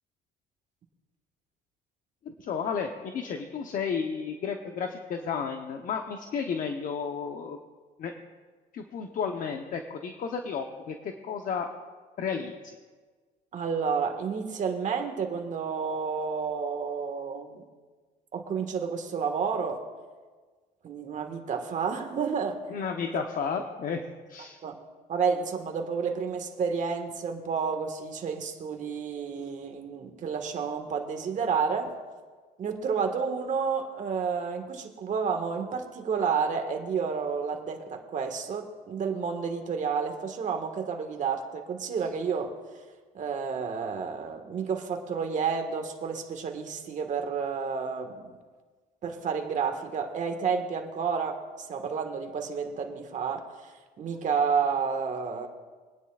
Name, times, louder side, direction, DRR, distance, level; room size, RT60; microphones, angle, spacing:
voice 1, 2.2-7.6 8.0-8.1 8.7-11.7 12.2-12.8 22.7-24.0 24.3-24.6, left 6 dB, 55° left, 4 dB, 0.9 m, -32 dB
voice 2, 13.5-17.6 18.3-19.8 20.8-22.6 23.1-23.5 24.6-24.8 25.1-32.0 32.6-42.5 43.1-48.3 49.0-55.5, right 6 dB, 50° right, 4 dB, 1.6 m, -30 dB
24.5 x 10.0 x 2.4 m, 1.4 s
cardioid pair, 110°, 17 cm